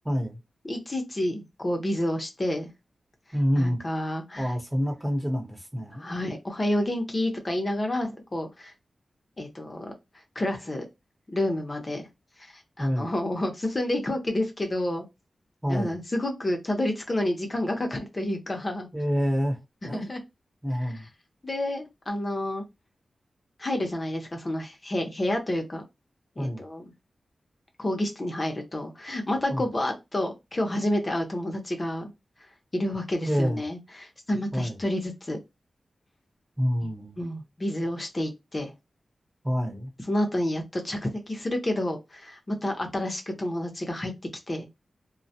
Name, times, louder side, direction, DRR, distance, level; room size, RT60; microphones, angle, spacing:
voice 1, 0.0-0.4 3.3-3.8 4.4-6.1 12.8-13.1 15.6-16.0 18.9-20.1 20.6-21.1 26.4-26.6 29.5-29.7 33.2-33.6 34.5-34.8 36.6-37.2 39.4-39.9, equal, 10° right, 0.9 m, -27 dB
voice 2, 0.6-2.7 3.6-4.5 6.0-8.7 9.4-9.9 10.4-10.9 11.3-12.0 12.8-15.1 15.7-18.9 19.9-20.2 21.4-22.6 23.6-25.8 26.4-26.8 27.8-32.1 32.7-35.4 37.2-38.7 40.1-44.1 44.5-44.7, left 1 dB, 40° left, 0.7 m, -29 dB
2.1 x 2.1 x 2.7 m
cardioid pair, 50°, 0 cm